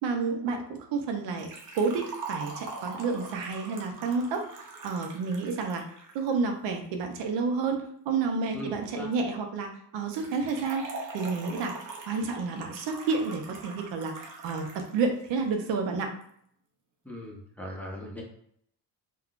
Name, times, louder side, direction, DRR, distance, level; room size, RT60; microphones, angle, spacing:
voice 1, 0.0-1.5 1.7-5.8 6.1-10.9 11.1-11.7 12.1-16.1, right 4 dB, 90° right, 4 dB, 0.7 m, -30 dB
Liquid, 1.4-6.4 10.1-14.9 15.2-15.3 16.2-16.3, right 3 dB, 45° right, 0.6 m, -42 dB
voice 2, 8.5-9.1 17.0-18.2, equal, 5° left, -3 dB, 0.6 m, -39 dB
3.5 x 2.3 x 2.4 m, 0.68 s
cardioid pair, 135°, 42 cm